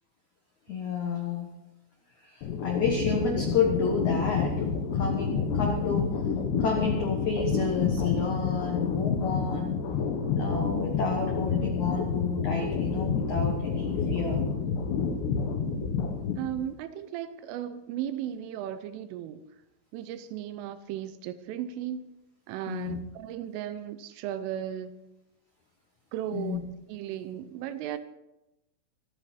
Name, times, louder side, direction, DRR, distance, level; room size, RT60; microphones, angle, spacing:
voice 1, 0.7-1.5 2.2-4.5 4.9-6.1 6.6-9.7 10.3-14.4 22.7-23.0 26.3-26.6, left 5 dB, 85° left, 1 dB, 1.6 m, -30 dB
sound 1, 2.4-16.6, left 5 dB, 65° left, 3.5 m, -29 dB
voice 2, 16.4-19.4 19.9-22.1 22.5-24.9 26.1-26.6 26.9-28.0, right 11 dB, 80° right, 12 dB, 3.2 m, -36 dB
24.5 x 9.3 x 4.4 m, 0.94 s
omnidirectional pair, 5.8 m